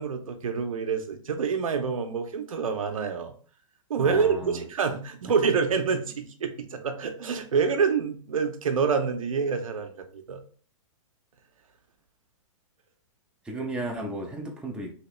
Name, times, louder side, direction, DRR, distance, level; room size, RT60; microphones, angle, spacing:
voice 1, 0.0-3.3 3.9-10.4, right 5 dB, 85° right, 6 dB, 0.7 m, -27 dB
voice 2, 4.0-4.6 13.4-14.9, right 1 dB, 5° right, 0 dB, 0.6 m, -34 dB
2.9 x 2.9 x 3.1 m, 0.42 s
hypercardioid pair, 130°, 17 cm